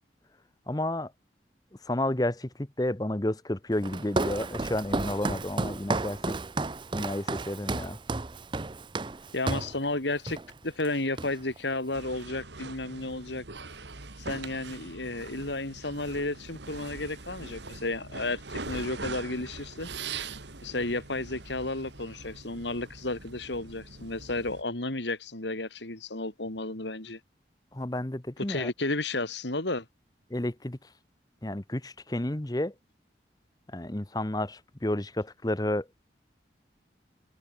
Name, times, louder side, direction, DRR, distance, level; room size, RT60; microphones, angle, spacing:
voice 1, 0.7-1.1 1.8-6.4 6.9-8.0 27.7-28.7 30.3-30.8 31.4-32.7 33.7-35.9, left 1 dB, 20° left, 0.9 m, -31 dB
Walk footsteps, 3.8-9.8 10.3-10.5 10.8-11.6, right 3 dB, 25° right, 0.5 m, -32 dB
voice 2, 9.3-10.4 10.6-13.4 14.2-19.9 20.6-27.2 28.5-29.8, left 2 dB, 75° left, 3.1 m, -32 dB
sound 1, 11.9-24.6, right 4 dB, 75° right, 2.5 m, -42 dB
open air
head